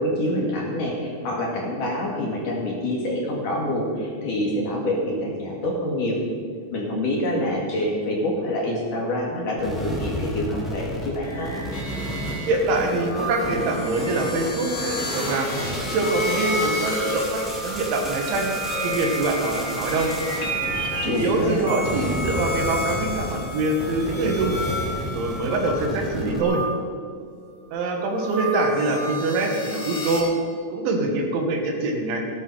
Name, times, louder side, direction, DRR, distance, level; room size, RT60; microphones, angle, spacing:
voice 1, 0.0-6.2 6.7-11.5 21.1-21.7, left 1 dB, 50° left, -2 dB, 3.2 m, -26 dB
sound 1, 9.6-21.5 21.8-26.4, equal, ahead, 1.9 m, -33 dB
sound 2, 11.2-26.7 27.6-30.2, equal, 25° left, 4.2 m, -31 dB
voice 2, 12.5-18.5 18.8-20.1 21.0-24.6 25.1-26.6 27.7-30.4 30.7-32.2, right 2 dB, 75° right, 2 dB, 4.2 m, -24 dB
17.0 x 12.0 x 5.8 m, 2.2 s
omnidirectional pair, 5.5 m